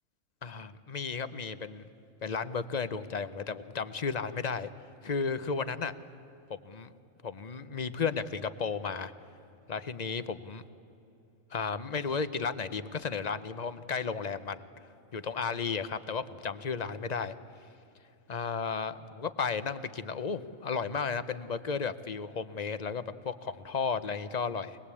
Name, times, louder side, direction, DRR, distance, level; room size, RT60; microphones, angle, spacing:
voice 1, 0.4-1.8 2.2-4.7 5.0-5.9 6.5-6.9 7.2-9.1 9.7-10.6 11.5-14.6 15.1-17.3 18.3-24.8, left 5 dB, 40° left, 13 dB, 0.7 m, -34 dB
25.0 x 20.0 x 8.5 m, 2.7 s
omnidirectional pair, 1.4 m